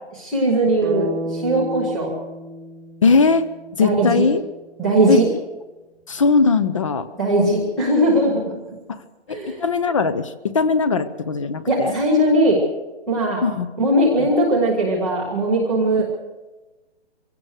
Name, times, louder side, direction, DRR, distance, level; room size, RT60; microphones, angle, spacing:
voice 1, 0.1-2.1 3.8-4.3 4.8-5.3 7.2-8.5 9.3-9.6 11.7-12.6 13.1-13.4 13.8-16.1, right 1 dB, ahead, -6 dB, 0.6 m, -19 dB
sound 1, 0.8-4.9, right 1 dB, 15° right, 1.1 m, -32 dB
voice 2, 3.0-3.5 3.8-4.4 5.1-5.2 6.1-7.1 8.9-9.0 9.3-11.9 13.4-13.7 14.2-14.3, left 4 dB, 30° left, 14 dB, 0.8 m, -19 dB
24.0 x 17.0 x 6.4 m, 1.1 s
hypercardioid pair, 175°, 34 cm